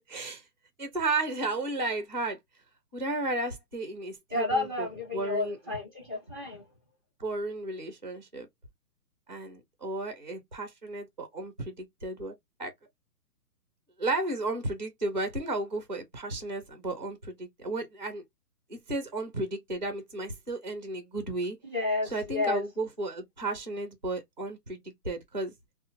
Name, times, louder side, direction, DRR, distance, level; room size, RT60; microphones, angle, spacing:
voice 1, 0.1-0.4 0.8-2.4 2.9-4.9 5.1-5.6 7.2-8.5 9.3-12.3 12.6-12.7 14.0-18.2 18.7-21.6 22.0-25.5, right 2 dB, 30° right, 0.4 m, -33 dB
voice 2, 4.3-6.6 21.6-22.6, left 3 dB, 15° left, 0.7 m, -31 dB
2.8 x 2.0 x 2.6 m
hypercardioid pair, 175°, 46 cm